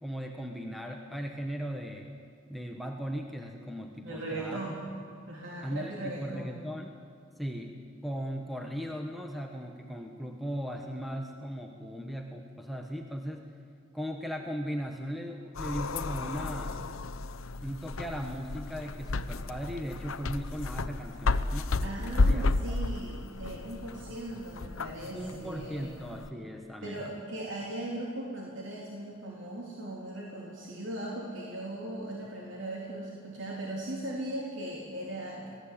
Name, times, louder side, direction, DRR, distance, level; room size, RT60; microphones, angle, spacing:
voice 1, 0.0-2.1 2.5-4.6 5.6-7.0 7.4-7.7 8.0-13.6 13.9-16.9 17.6-22.8 25.1-27.1, equal, ahead, 1 dB, 1.2 m, -38 dB
voice 2, 4.0-4.8 5.3-6.5 21.8-25.9 26.8-35.5, right 1 dB, 65° right, -3 dB, 3.6 m, -38 dB
sound 1, 15.5-26.3, left 3 dB, 85° left, 0.8 m, -32 dB
26.0 x 18.5 x 8.6 m, 2.3 s
head